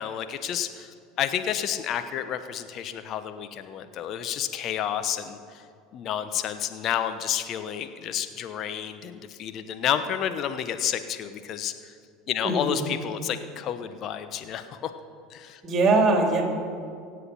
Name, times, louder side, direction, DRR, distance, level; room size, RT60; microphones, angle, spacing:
voice 1, 0.0-5.6 5.9-11.9 12.3-14.9 15.3-15.6, left 9 dB, 45° left, 10 dB, 1.1 m, -30 dB
voice 2, 12.4-12.8 15.6-16.4, right 3 dB, 35° right, 2 dB, 3.7 m, -21 dB
24.5 x 8.2 x 5.7 m, 2.3 s
figure-of-eight pair, 70°, 0 cm